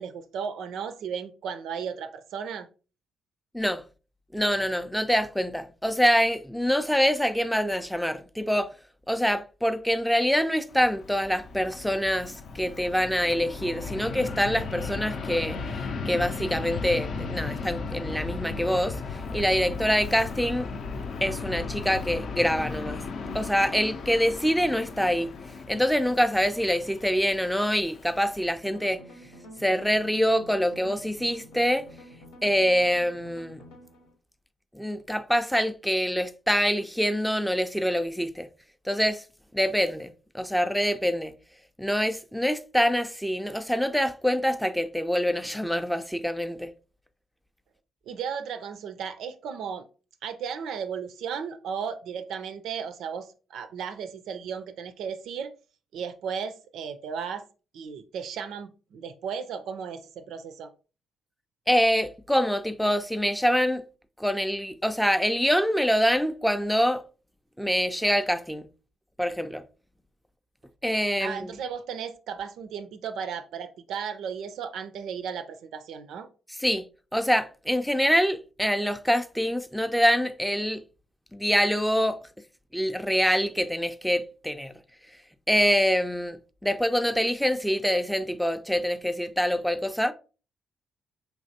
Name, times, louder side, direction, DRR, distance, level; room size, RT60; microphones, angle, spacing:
voice 1, 0.0-2.7 48.1-49.8 50.2-55.5 55.9-57.4 57.7-60.7 71.2-76.3, right 7 dB, 65° right, 0.4 m, -35 dB
voice 2, 4.3-8.7 9.1-15.6 16.1-19.0 19.3-20.7 21.2-23.0 23.3-25.3 25.7-29.0 29.6-31.9 32.4-33.6 34.7-38.5 38.9-39.2 39.5-41.3 41.8-46.7 61.7-63.8 64.2-67.0 67.6-68.7 69.2-69.6 70.8-71.5 76.6-76.9 77.1-80.8 81.3-82.2 82.7-84.7 85.5-86.4 86.6-90.1, equal, ahead, 0.4 m, -25 dB
Fixed-wing aircraft airplane, 10.7-28.5, left 4 dB, 55° left, 0.5 m, -36 dB
sound 1, 28.6-34.1, equal, 80° left, 0.9 m, -48 dB
4.4 x 3.2 x 2.6 m
figure-of-eight pair, 40°, 0 cm